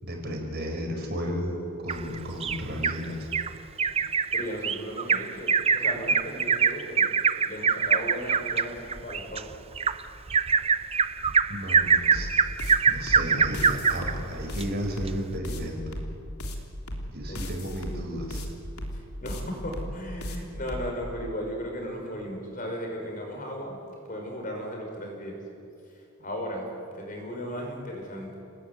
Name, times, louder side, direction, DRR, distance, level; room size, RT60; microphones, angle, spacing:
voice 1, 0.0-3.3 11.5-15.8 17.1-18.5, equal, 45° right, 2 dB, 5.5 m, -33 dB
Bird vocalization bird call bird song, 1.9-3.0 3.3-3.5 3.8-14.1 14.6-14.7 15.1-15.2, right 6 dB, 25° right, 0.7 m, -24 dB
voice 2, 4.3-7.1 7.4-9.6 17.3-17.5 18.9-23.8 24.1-25.4 25.9-28.4, equal, 40° left, 2 dB, 5.7 m, -36 dB
sound 1, 12.1-20.9, left 1 dB, 85° left, 3.5 m, -35 dB
29.5 x 19.5 x 9.7 m, 2.6 s
head